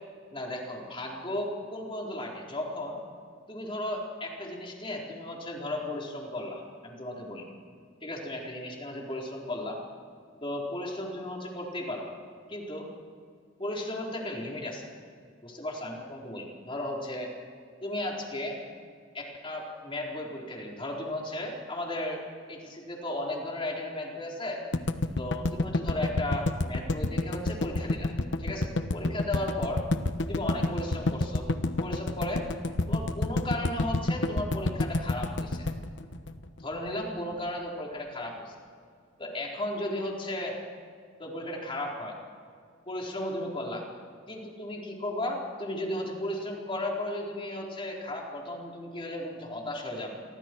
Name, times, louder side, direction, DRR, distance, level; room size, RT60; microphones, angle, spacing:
voice 1, 0.3-3.0 3.5-7.5 8.0-9.8 10.4-12.1 12.5-12.9 13.6-14.9 15.4-17.3 17.8-18.6 19.1-22.2 22.5-24.6 25.2-28.1 28.4-29.8 30.3-31.5 31.8-32.5 32.9-35.7 36.6-38.5 39.2-40.6 41.2-42.2 42.9-43.9 44.3-50.1, left 1 dB, 25° left, -1 dB, 4.2 m, -35 dB
sound 1, 24.7-36.9, left 2 dB, 65° left, 1.1 m, -29 dB
28.5 x 23.0 x 4.7 m, 2.2 s
head